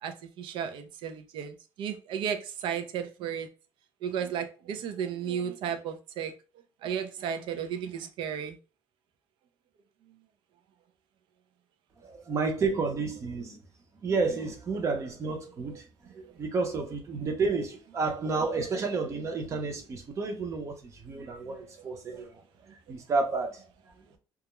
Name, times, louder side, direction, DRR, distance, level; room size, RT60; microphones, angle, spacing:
voice 1, 0.0-3.5 4.0-6.3 6.8-8.6 15.7-15.8 16.2-16.3, right 8 dB, 75° right, 0.4 m, -34 dB
voice 2, 12.0-13.6 14.0-22.4 22.7-23.9, right 4 dB, 35° right, 0.6 m, -31 dB
2.3 x 2.0 x 3.0 m
cardioid pair, 150°, 9 cm